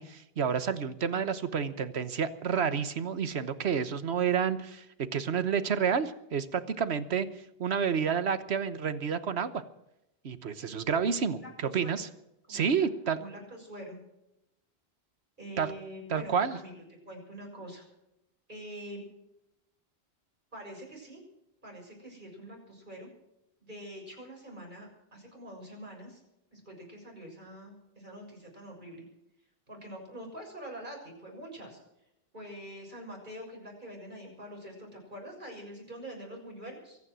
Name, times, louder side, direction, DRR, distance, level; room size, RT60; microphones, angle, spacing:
voice 1, 0.0-4.9 5.1-7.3 7.6-9.6 10.2-12.1 12.5-13.2 15.6-15.7 16.1-16.6, right 7 dB, 85° right, 12 dB, 1.4 m, -29 dB
voice 2, 11.2-12.0 12.5-12.9 13.1-14.0 15.4-17.8 18.5-19.0 20.5-21.2 21.6-23.1 23.6-26.2 26.5-29.0 29.7-31.8 32.3-37.0, right 1 dB, 50° right, 0 dB, 6.8 m, -45 dB
23.5 x 9.7 x 6.3 m, 0.86 s
omnidirectional pair, 1.1 m